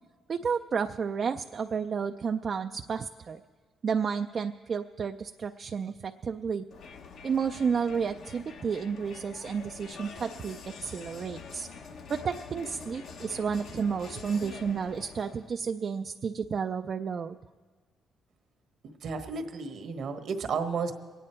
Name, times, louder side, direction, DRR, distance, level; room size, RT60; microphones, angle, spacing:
voice 1, 0.3-3.4 3.8-6.6 7.2-11.7 12.1-17.4, right 6 dB, 50° right, 6 dB, 0.4 m, -31 dB
Crowd, 6.7-15.6, left 5 dB, 70° left, 1.0 m, -46 dB
voice 2, 18.8-20.9, right 5 dB, 65° right, 7 dB, 1.2 m, -33 dB
23.0 x 9.3 x 4.4 m, 1.5 s
cardioid pair, 90°, 0 cm